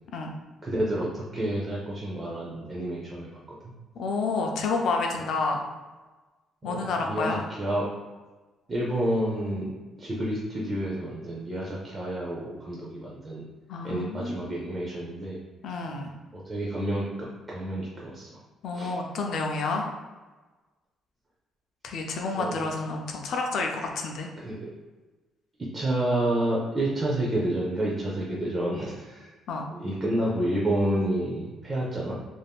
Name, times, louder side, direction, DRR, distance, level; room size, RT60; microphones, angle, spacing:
voice 1, 0.6-3.7 6.6-7.9 8.7-9.7 10.0-13.4 13.8-15.4 16.3-18.4 18.7-19.0 22.3-22.7 24.4-24.7 25.7-29.3 29.7-32.1, right 1 dB, 20° right, -4 dB, 0.4 m, -29 dB
voice 2, 4.0-5.6 6.6-7.4 13.7-14.6 15.6-16.1 18.6-19.8 21.8-24.3 29.5-29.6, left 3 dB, 55° left, 2 dB, 0.4 m, -29 dB
2.5 x 2.3 x 3.4 m, 1.2 s
cardioid pair, 180°, 0 cm